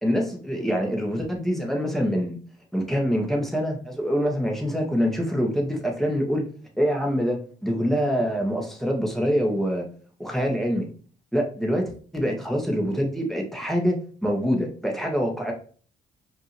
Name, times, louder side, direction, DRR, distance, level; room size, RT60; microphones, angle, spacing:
voice 1, 0.0-2.4 2.7-6.4 6.8-9.9 10.2-10.9 11.3-15.5, equal, ahead, 0 dB, 1.6 m, -25 dB
5.2 x 3.0 x 3.3 m, 0.43 s
hypercardioid pair, 50°, 21 cm